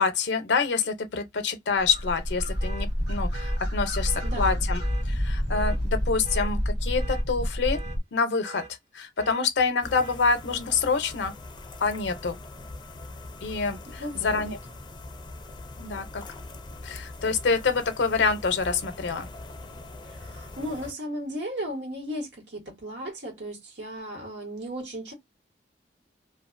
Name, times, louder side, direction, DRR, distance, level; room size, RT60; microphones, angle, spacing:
voice 1, 0.0-4.8 5.1-7.8 8.1-8.6 8.9-11.3 11.8-12.4 13.4-14.6 15.8-16.2 16.8-19.3, left 5 dB, 75° left, 0.5 m, -26 dB
sound 1, 1.8-8.0, equal, 60° right, 1.4 m, -28 dB
sound 2, 2.6-2.9 3.3-3.6 4.1-4.3 4.8-5.1 5.5-5.8 6.2-6.5 7.0-7.2 7.7-8.0 8.4-8.7 9.2-9.4 9.9-10.2, right 5 dB, 40° right, 1.0 m, -43 dB
voice 2, 4.2-4.7 14.0-14.5 20.1-25.1, equal, 80° right, 1.4 m, -35 dB
sound 3, 9.8-20.9, left 2 dB, 25° left, 0.4 m, -42 dB
2.5 x 2.4 x 2.4 m
head